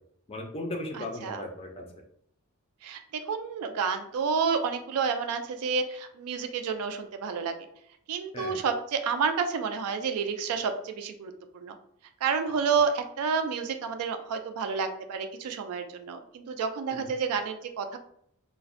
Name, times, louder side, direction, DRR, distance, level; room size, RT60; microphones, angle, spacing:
voice 1, 0.3-1.9 8.3-8.6 16.9-17.1, left 1 dB, 25° left, 2 dB, 0.4 m, -37 dB
voice 2, 0.9-1.4 2.8-7.5 8.1-11.7 12.2-18.0, right 5 dB, 70° right, 7 dB, 0.3 m, -30 dB
2.4 x 2.0 x 2.5 m, 0.68 s
head